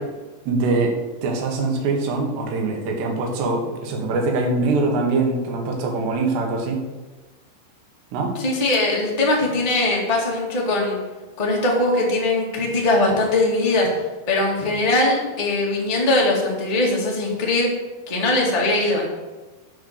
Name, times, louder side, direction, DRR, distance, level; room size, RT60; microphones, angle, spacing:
voice 1, 0.5-6.8 8.1-8.4, right 3 dB, 85° right, 2 dB, 3.8 m, -23 dB
voice 2, 8.3-11.0 11.4-13.9 14.3-17.7 18.1-19.1, left 2 dB, 15° left, -3 dB, 1.3 m, -21 dB
11.0 x 5.5 x 6.8 m, 1.2 s
omnidirectional pair, 4.7 m